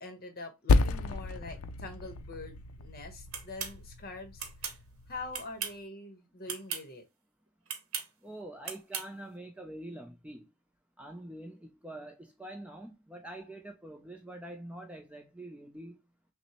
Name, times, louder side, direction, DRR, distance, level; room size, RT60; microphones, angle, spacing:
voice 1, 0.0-4.5 5.1-7.0, left 2 dB, 45° left, 1.0 m, -44 dB
Percussion, 0.7-5.5, left 3 dB, 75° left, 0.4 m, -31 dB
sound 1, 3.3-3.7 4.4-4.8 5.3-5.8 6.4-6.8 7.7-8.1 8.6-9.1, right 7 dB, 70° right, 0.8 m, -37 dB
voice 2, 8.2-10.5 11.0-16.0, right 1 dB, 5° right, 0.4 m, -45 dB
6.0 x 2.1 x 2.8 m
head